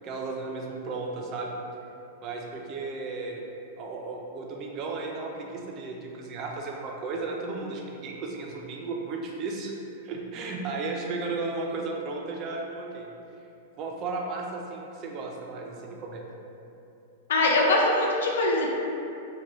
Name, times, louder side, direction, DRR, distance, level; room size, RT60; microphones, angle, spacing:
voice 1, 0.0-1.6 2.2-3.4 3.8-9.7 10.0-13.1 13.8-16.2, right 3 dB, 25° right, 0 dB, 0.4 m, -34 dB
voice 2, 17.3-18.7, left 2 dB, 80° left, -1 dB, 0.5 m, -22 dB
3.2 x 2.2 x 3.8 m, 2.8 s
supercardioid pair, 170°, 0 cm